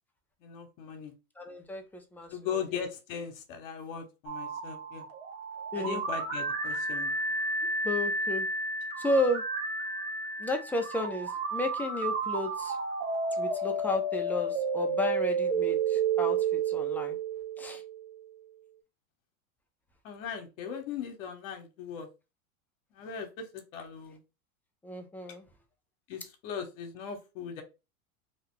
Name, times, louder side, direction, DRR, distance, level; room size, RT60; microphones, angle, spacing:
voice 1, 0.4-1.1 2.3-5.0 5.7-7.2 20.0-22.1 22.9-24.2 26.1-27.6, left 7 dB, 65° left, 5 dB, 1.0 m, -38 dB
voice 2, 1.4-2.9 5.7-6.0 7.8-8.5 9.0-9.4 10.4-12.8 13.4-17.2 17.6-17.8 24.8-25.4, left 1 dB, 5° left, 3 dB, 0.4 m, -33 dB
sound 1, 4.3-18.1, right 4 dB, 35° right, 1.1 m, -31 dB
2.8 x 2.3 x 3.6 m, 0.28 s
hypercardioid pair, 110°, 43 cm